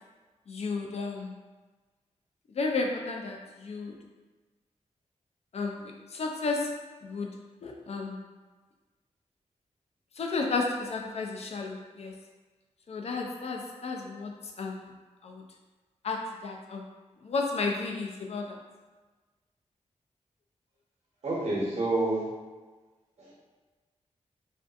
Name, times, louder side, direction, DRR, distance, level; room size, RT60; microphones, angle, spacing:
voice 1, 0.5-1.3 2.5-3.9 5.5-6.7 7.0-7.3 7.6-8.2 10.2-12.1 12.9-14.3 14.6-14.9 15.2-15.4 16.0-16.8 17.2-18.6, left 3 dB, 60° left, 1 dB, 0.4 m, -32 dB
voice 2, 21.2-22.2 23.2-23.3, right 2 dB, 60° right, -6 dB, 1.0 m, -28 dB
2.4 x 2.4 x 2.4 m, 1.3 s
wide cardioid pair, 90°, 12 cm